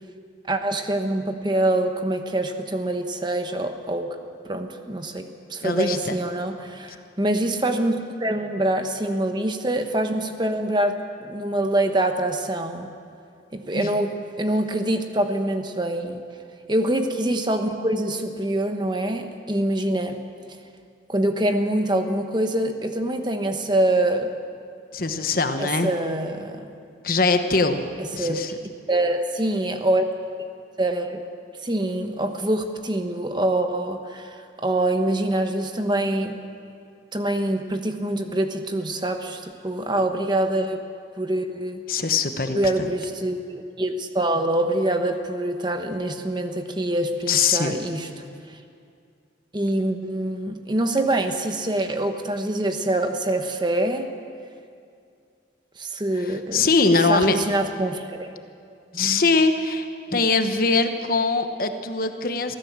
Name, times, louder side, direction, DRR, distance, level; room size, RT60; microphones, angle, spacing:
voice 1, 0.5-4.2 4.4-7.9 8.2-12.9 13.5-16.2 16.7-20.2 20.5-20.6 21.1-24.3 25.6-26.8 28.2-28.4 28.9-30.1 30.8-31.2 31.6-36.4 37.1-40.8 41.2-41.8 42.5-48.1 48.5-48.6 49.5-54.1 55.8-56.7 57.1-58.3 58.9-59.2 60.1-60.2, right 1 dB, 25° right, 6 dB, 1.1 m, -25 dB
voice 2, 5.6-6.2 13.7-13.9 24.9-25.9 27.0-27.8 28.1-28.5 41.9-42.9 47.3-47.8 56.2-57.4 58.9-62.5, left 4 dB, 50° left, 7 dB, 1.1 m, -22 dB
23.5 x 15.0 x 7.3 m, 2.3 s
head